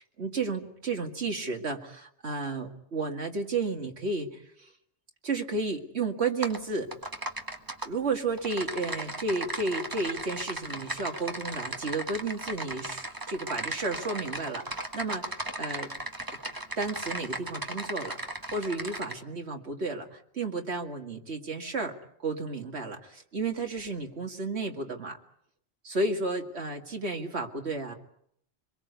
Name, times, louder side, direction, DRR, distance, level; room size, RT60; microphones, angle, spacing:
voice 1, 0.0-4.7 5.2-6.9 7.8-15.9 16.8-25.2 25.8-27.9, right 3 dB, 70° right, 3 dB, 2.5 m, -32 dB
Typing, 6.4-6.6 6.9-7.9 8.4-19.1, right 1 dB, 20° right, 1.5 m, -36 dB
25.0 x 22.0 x 8.2 m, 0.71 s
omnidirectional pair, 1.2 m